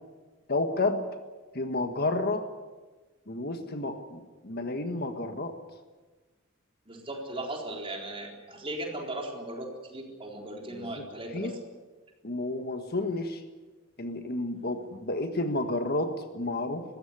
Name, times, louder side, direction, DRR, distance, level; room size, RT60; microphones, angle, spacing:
voice 1, 0.5-1.0 1.5-2.4 3.3-5.6 10.7-11.1 11.3-11.6 12.2-13.4 14.0-16.8, left 2 dB, 50° left, 7 dB, 1.6 m, -31 dB
voice 2, 6.9-11.6, right 1 dB, 25° right, 1 dB, 3.9 m, -37 dB
21.0 x 15.5 x 9.8 m, 1.3 s
head